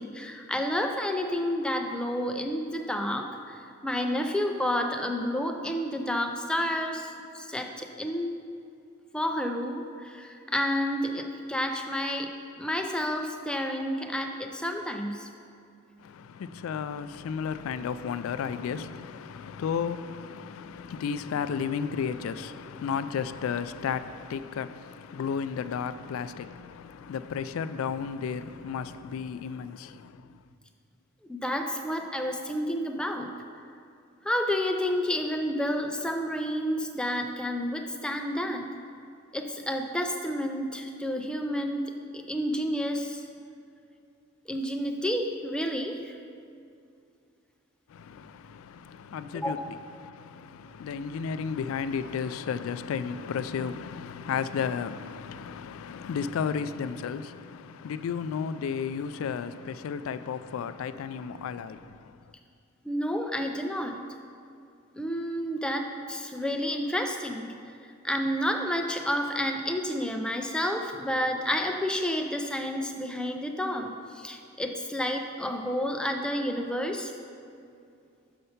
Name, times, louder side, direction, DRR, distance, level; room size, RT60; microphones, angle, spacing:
voice 1, 0.0-8.3 9.1-12.3 12.6-15.3 31.3-33.3 34.2-38.7 39.3-43.3 44.5-46.1 49.3-49.7 62.8-64.0 64.9-67.5 67.8-77.1, equal, 5° left, 0.4 m, -30 dB
voice 2, 16.0-30.3 47.9-62.2, left 6 dB, 75° left, 0.3 m, -33 dB
6.6 x 5.4 x 5.7 m
head